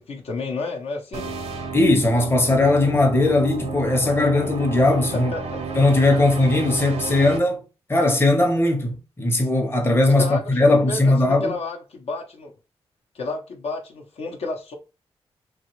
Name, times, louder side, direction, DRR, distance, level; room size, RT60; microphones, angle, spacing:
voice 1, 0.0-1.4 5.1-5.6 10.2-10.6 10.9-12.5 13.1-14.8, left 3 dB, 70° left, 0.7 m, -31 dB
sound 1, 1.1-7.4, right 4 dB, 80° right, 0.6 m, -32 dB
voice 2, 1.7-5.3 5.8-7.6 7.9-11.5, left 2 dB, 20° left, 0.7 m, -19 dB
2.8 x 2.3 x 3.0 m
cardioid pair, 65°, 11 cm